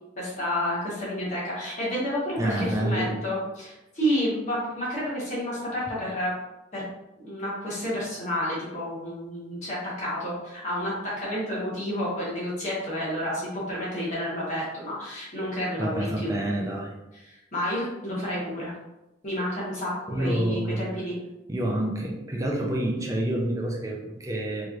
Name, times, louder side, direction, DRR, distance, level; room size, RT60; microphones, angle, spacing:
voice 1, 0.2-6.3 6.7-6.8 7.2-16.3 17.1-18.7 19.2-21.2, equal, 40° left, -7 dB, 1.1 m, -30 dB
voice 2, 2.4-3.2 15.8-16.9 20.1-20.9 21.5-24.7, right 1 dB, 15° right, -1 dB, 0.5 m, -28 dB
3.1 x 3.0 x 2.4 m, 0.94 s
head